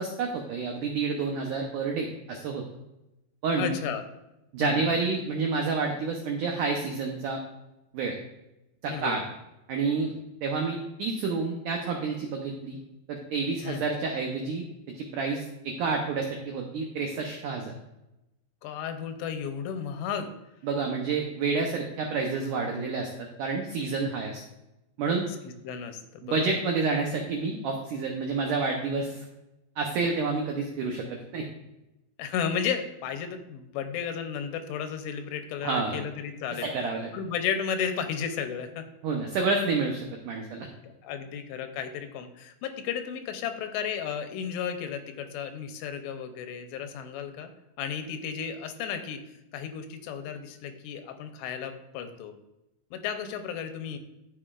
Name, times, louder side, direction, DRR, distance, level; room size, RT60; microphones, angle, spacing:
voice 1, 0.0-2.6 3.4-3.7 4.5-7.4 7.9-8.2 8.8-9.2 9.7-10.1 10.4-12.8 13.1-14.6 14.9-17.7 20.6-24.4 25.0-25.3 26.2-29.3 29.8-31.5 35.6-36.0 36.6-37.1 39.0-40.7, right 4 dB, 90° right, 2 dB, 1.8 m, -29 dB
voice 2, 3.6-4.0 4.6-4.9 8.9-9.2 13.6-13.8 18.6-20.3 25.6-26.5 32.2-36.7 37.1-38.9 40.8-47.5 47.8-49.2 49.5-52.3 52.9-54.0, left 7 dB, 85° left, 7 dB, 2.9 m, -33 dB
12.0 x 6.6 x 2.4 m, 0.92 s
omnidirectional pair, 4.8 m